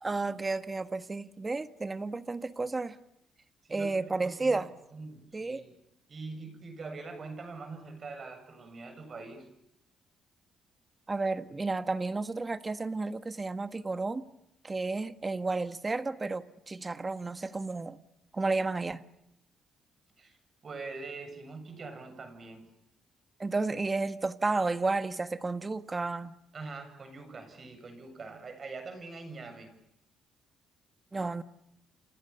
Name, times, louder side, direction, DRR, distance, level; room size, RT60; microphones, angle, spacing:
voice 1, 0.0-3.0 3.7-4.7 5.3-5.6 11.1-14.2 14.6-18.0 18.3-19.0 23.4-26.3 31.1-31.4, right 3 dB, 25° right, 1.6 m, -32 dB
voice 2, 3.6-4.6 4.9-5.7 6.1-9.5 20.2-20.4 20.6-22.7 26.5-29.7, right 3 dB, 40° right, 7.4 m, -43 dB
30.0 x 27.5 x 7.1 m
cardioid pair, 90°, 0 cm